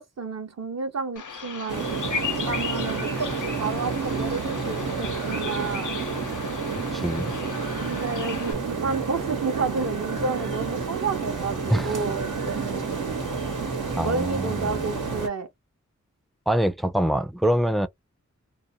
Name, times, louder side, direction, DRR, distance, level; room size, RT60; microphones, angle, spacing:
voice 1, 0.0-1.9 2.4-5.9 7.8-13.0 14.0-15.5, right 4 dB, 60° right, 0.8 m, -31 dB
Bird vocalization bird call bird song, 1.2-8.5, left 6 dB, 80° left, 0.6 m, -36 dB
sound 1, 1.7-15.3, right 4 dB, 90° right, 1.2 m, -30 dB
voice 2, 6.8-7.3 11.7-12.0 14.0-14.9 16.5-17.9, right 1 dB, ahead, 0.3 m, -25 dB
2.5 x 2.1 x 2.7 m
wide cardioid pair, 70°, 30 cm